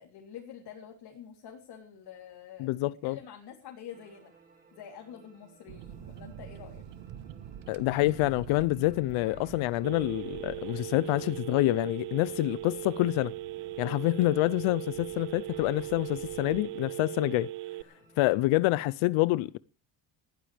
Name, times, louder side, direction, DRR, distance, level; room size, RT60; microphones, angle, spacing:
voice 1, 0.0-4.3 4.7-6.9, left 8 dB, 55° left, 3.5 m, -47 dB
voice 2, 2.6-3.2 7.7-13.3 13.8-17.5 18.2-19.6, left 18 dB, 75° left, 0.7 m, -27 dB
sound 1, 3.9-18.4, right 3 dB, 15° right, 6.9 m, -58 dB
sound 2, 5.7-16.6, right 10 dB, 60° right, 1.5 m, -48 dB
Telephone, 9.8-17.8, right 15 dB, 75° right, 0.8 m, -39 dB
20.5 x 15.5 x 3.4 m
cardioid pair, 160°, 48 cm